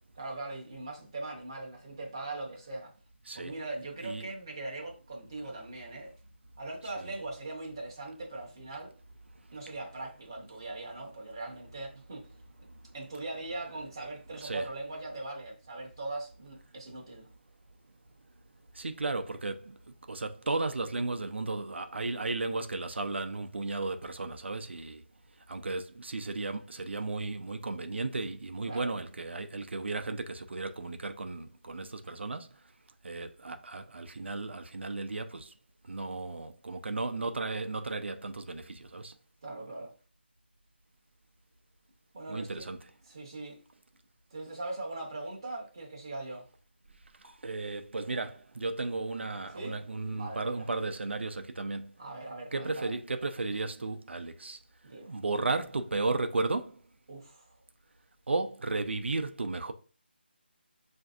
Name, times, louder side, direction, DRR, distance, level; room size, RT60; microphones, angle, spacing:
voice 1, 0.2-2.9 3.3-6.1 6.6-8.9 9.5-12.3 12.9-17.3 28.6-29.0 39.4-39.9 42.1-42.7 43.1-43.6 44.3-46.5 49.5-49.8 50.1-50.7 52.0-53.0 54.8-55.1 57.1-57.5, right 2 dB, 25° right, 0.6 m, -40 dB
voice 2, 18.7-19.8 20.1-25.0 25.5-32.5 33.0-35.5 35.8-39.1 42.3-42.8 47.2-51.9 52.5-54.6 55.1-56.8 58.3-59.7, right 3 dB, 85° right, 0.5 m, -34 dB
5.9 x 2.6 x 2.4 m
figure-of-eight pair, 180°, 6 cm